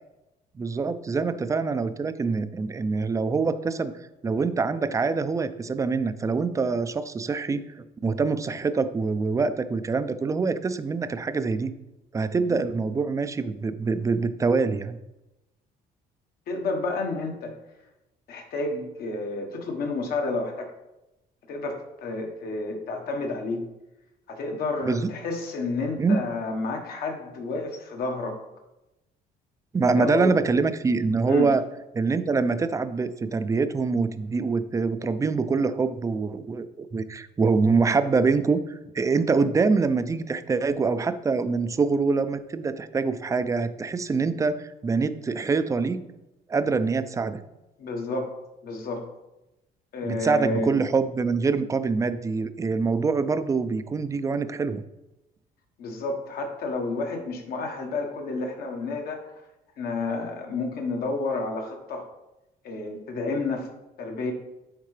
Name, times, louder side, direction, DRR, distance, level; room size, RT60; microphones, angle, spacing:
voice 1, 0.6-3.9 4.2-11.7 12.1-15.0 24.8-25.1 26.0-26.2 29.7-31.6 31.9-46.0 46.5-47.4 50.0-54.8, right 4 dB, 20° right, 12 dB, 0.4 m, -25 dB
voice 2, 16.5-17.6 18.3-20.7 21.5-23.7 24.3-28.4 29.9-30.3 31.3-31.5 47.8-48.3 48.6-49.1 49.9-50.7 55.8-59.3 59.8-62.1 62.6-63.7 64.0-64.3, left 3 dB, 65° left, 3 dB, 1.3 m, -30 dB
9.4 x 3.6 x 3.3 m, 0.95 s
cardioid pair, 110°, 17 cm